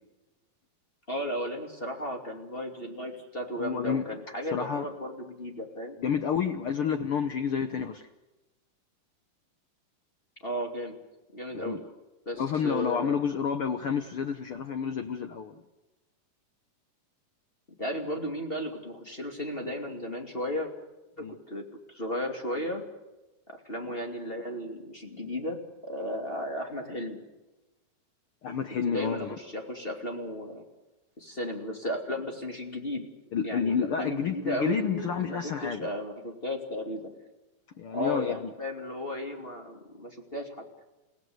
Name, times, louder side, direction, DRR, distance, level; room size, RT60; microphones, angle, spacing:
voice 1, 1.1-6.0 10.4-11.0 11.3-11.8 12.3-13.2 17.8-20.7 21.2-21.6 21.9-22.8 23.5-27.2 28.8-30.6 31.2-33.0 33.4-37.1 37.9-40.6, equal, 20° left, 2 dB, 2.3 m, -34 dB
voice 2, 3.6-4.0 4.5-4.9 6.0-8.1 11.5-11.8 12.4-15.5 21.2-21.3 28.4-29.4 33.3-35.9 37.8-38.4, left 7 dB, 80° left, 7 dB, 1.2 m, -29 dB
30.0 x 17.0 x 7.9 m, 1.1 s
omnidirectional pair, 3.9 m